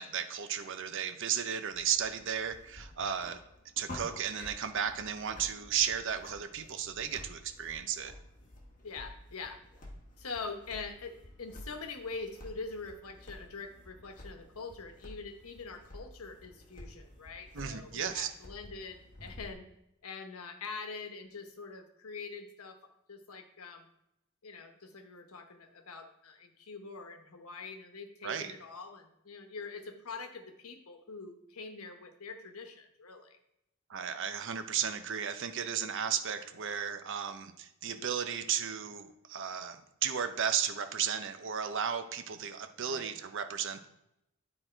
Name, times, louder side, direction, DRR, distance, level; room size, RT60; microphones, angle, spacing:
voice 1, 0.0-3.4 3.8-8.1 17.5-18.3 28.2-28.5 33.9-43.9, right 8 dB, 60° right, 8 dB, 0.7 m, -34 dB
sound 1, 1.7-19.5, left 1 dB, 40° left, 1.3 m, -51 dB
voice 2, 8.8-9.6 10.2-19.7 20.0-22.8 23.1-23.9 24.4-33.4 42.8-43.1, left 4 dB, 80° left, 6 dB, 1.0 m, -44 dB
9.9 x 4.2 x 4.4 m, 0.83 s
head